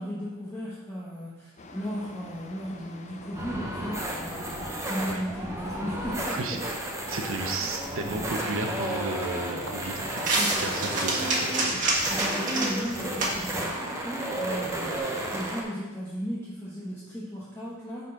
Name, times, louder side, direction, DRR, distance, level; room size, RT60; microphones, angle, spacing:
voice 1, 0.0-6.6 7.6-7.8 10.3-10.8 12.0-18.0, equal, 10° left, -8 dB, 1.1 m, -36 dB
sound 1, 1.6-11.8, left 2 dB, 35° left, 0.5 m, -46 dB
sound 2, 3.3-15.6, right 1 dB, 15° right, 0.9 m, -33 dB
voice 2, 6.3-6.7 7.1-10.2 10.6-11.5, right 2 dB, 65° right, 4 dB, 0.8 m, -33 dB
sound 3, 8.1-15.0, right 2 dB, 40° right, 1.5 m, -31 dB
9.9 x 4.0 x 3.8 m, 1.2 s
head